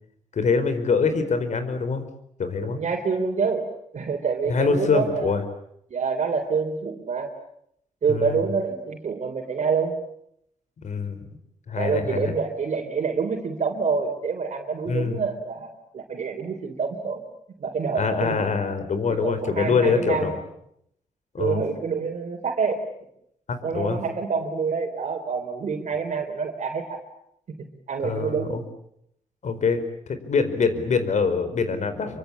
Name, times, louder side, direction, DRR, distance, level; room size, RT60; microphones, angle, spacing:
voice 1, 0.3-2.0 2.4-2.8 4.5-5.4 8.1-8.4 10.8-11.2 11.7-12.3 14.9-15.2 17.9-20.4 21.3-21.6 23.5-24.0 28.0-28.6 29.4-32.2, left 5 dB, 65° left, 10 dB, 4.7 m, -24 dB
voice 2, 2.6-3.7 3.9-5.4 5.9-7.3 8.0-10.0 11.8-17.2 17.6-18.5 19.2-20.3 21.4-22.8 23.6-27.0 27.6-28.6, right 5 dB, 65° right, 3 dB, 3.9 m, -27 dB
27.0 x 24.5 x 8.6 m, 0.73 s
cardioid pair, 95°, 13 cm